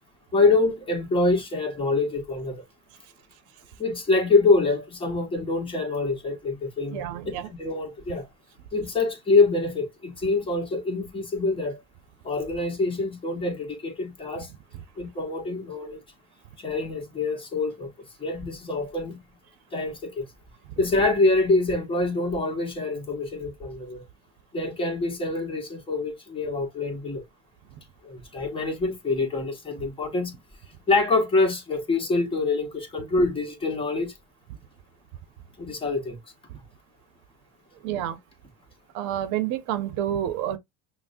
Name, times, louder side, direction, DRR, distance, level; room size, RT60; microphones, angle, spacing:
voice 1, 0.3-2.6 3.8-8.3 8.7-11.8 12.2-14.5 15.0-16.0 16.6-17.9 18.2-19.2 19.7-20.3 20.8-24.0 24.5-27.2 28.0-30.4 30.9-34.1 35.6-36.2, left 3 dB, 15° left, 1.5 m, -25 dB
voice 2, 6.9-7.5 37.8-38.2 38.9-40.6, right 11 dB, 70° right, 0.8 m, -28 dB
5.8 x 2.3 x 2.6 m
cardioid pair, 130°, 31 cm